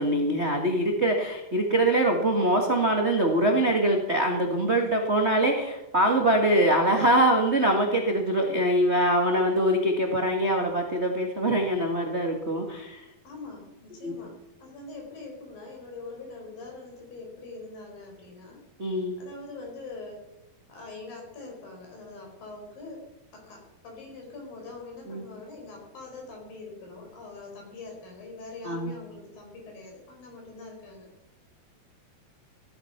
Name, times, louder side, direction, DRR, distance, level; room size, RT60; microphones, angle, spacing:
voice 1, 0.0-13.0 14.0-14.1 18.8-19.2 25.1-25.2 28.6-28.9, right 1 dB, 55° right, 2 dB, 0.7 m, -23 dB
voice 2, 13.2-18.6 19.2-20.3 20.7-23.0 23.3-31.1, left 3 dB, 60° left, 1 dB, 6.6 m, -43 dB
18.0 x 12.0 x 6.0 m, 0.95 s
omnidirectional pair, 4.6 m